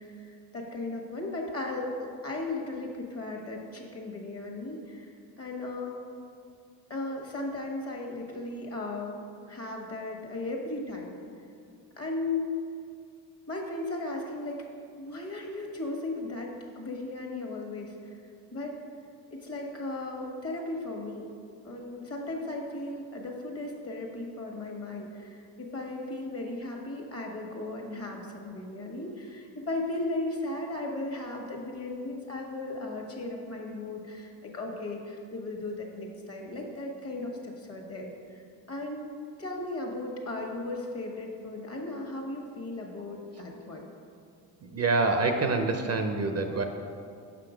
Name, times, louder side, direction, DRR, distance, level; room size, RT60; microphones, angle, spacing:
voice 1, 0.0-6.0 6.9-9.2 9.5-11.1 12.0-12.5 13.5-14.6 15.0-18.2 18.5-18.8 19.3-21.3 21.6-39.1 39.4-43.9, left 2 dB, 35° left, 1 dB, 1.5 m, -36 dB
voice 2, 44.6-46.6, right 3 dB, 35° right, 5 dB, 0.6 m, -26 dB
5.9 x 5.7 x 5.0 m, 2.4 s
supercardioid pair, 80°, 42 cm